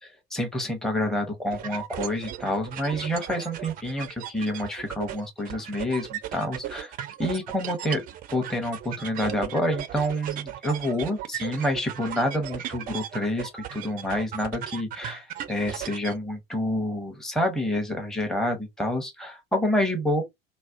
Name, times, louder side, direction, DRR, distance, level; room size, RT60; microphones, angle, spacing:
voice 1, 0.0-6.9 7.2-8.0 8.3-20.2, left 1 dB, ahead, 0.7 m, -28 dB
sound 1, 1.5-16.2, right 11 dB, 30° right, 0.4 m, -37 dB
2.4 x 2.0 x 2.5 m
figure-of-eight pair, 65°, 30 cm